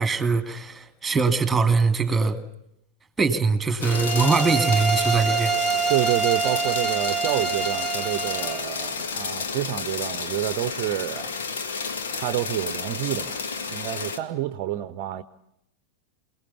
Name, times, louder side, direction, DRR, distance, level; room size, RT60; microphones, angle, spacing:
voice 1, 0.0-2.4 3.2-5.5, right 4 dB, 10° right, 11 dB, 2.4 m, -22 dB
sound 1, 3.8-14.2, left 5 dB, 65° left, 2.1 m, -31 dB
sound 2, 3.8-8.6, right 6 dB, 10° left, 2.4 m, -26 dB
voice 2, 5.9-11.3 12.2-15.2, right 14 dB, 45° right, 14 dB, 0.8 m, -28 dB
28.0 x 19.0 x 7.0 m, 0.79 s
figure-of-eight pair, 90°, 0 cm